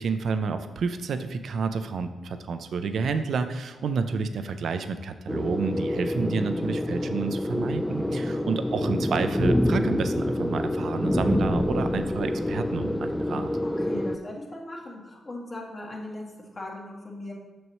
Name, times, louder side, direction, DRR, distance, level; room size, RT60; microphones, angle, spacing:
voice 1, 0.0-13.5, right 5 dB, 70° right, 9 dB, 0.4 m, -30 dB
sound 1, 5.3-14.2, left 1 dB, 10° left, 0.4 m, -27 dB
voice 2, 13.6-16.2 16.5-17.3, left 1 dB, 45° left, -3 dB, 1.8 m, -38 dB
6.2 x 6.2 x 3.1 m, 1.1 s
supercardioid pair, 45°, 0 cm